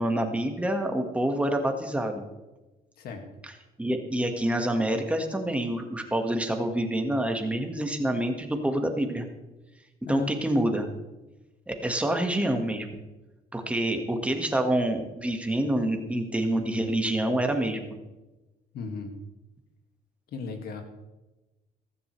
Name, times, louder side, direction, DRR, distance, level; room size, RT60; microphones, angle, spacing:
voice 1, 0.0-2.2 3.4-3.5 3.8-9.3 10.1-10.9 11.7-12.9 13.5-18.0, right 1 dB, 5° right, 4 dB, 1.7 m, -27 dB
voice 2, 10.1-10.4 18.7-19.1 20.3-20.8, left 4 dB, 65° left, 4 dB, 2.2 m, -35 dB
15.0 x 14.0 x 3.3 m, 1.1 s
cardioid pair, 110°, 17 cm